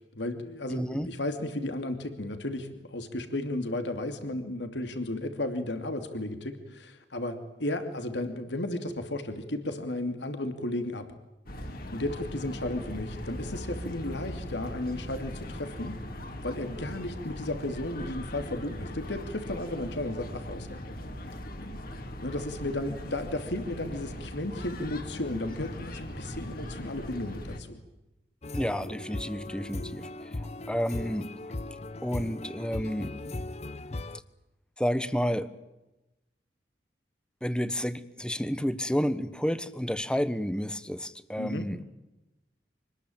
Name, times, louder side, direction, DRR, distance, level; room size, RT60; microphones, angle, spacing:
voice 1, 0.1-11.1 11.6-16.0 16.4-20.7 22.2-27.8 41.4-41.7, left 1 dB, 85° left, 8 dB, 2.7 m, -34 dB
voice 2, 0.7-1.1 28.5-31.3 32.0-33.1 34.8-35.5 37.4-41.8, equal, 5° left, 14 dB, 1.3 m, -30 dB
sound 1, 11.5-27.6, left 1 dB, 55° left, 3.2 m, -40 dB
sound 2, 28.4-34.2, left 2 dB, 40° left, 0.8 m, -38 dB
25.5 x 20.0 x 8.9 m, 0.97 s
head